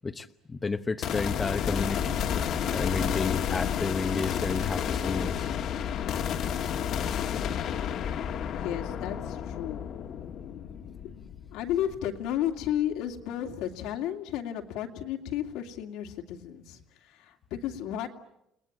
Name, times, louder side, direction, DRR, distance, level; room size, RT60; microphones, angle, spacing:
voice 1, 0.0-5.5, left 4 dB, 20° left, 8 dB, 1.0 m, -32 dB
sound 1, 1.0-12.4, left 8 dB, 60° left, 1.7 m, -31 dB
voice 2, 8.5-9.8 11.5-16.8 17.1-18.1, left 11 dB, 85° left, 3 dB, 2.7 m, -33 dB
30.0 x 20.0 x 8.9 m, 0.84 s
cardioid pair, 130°, 0 cm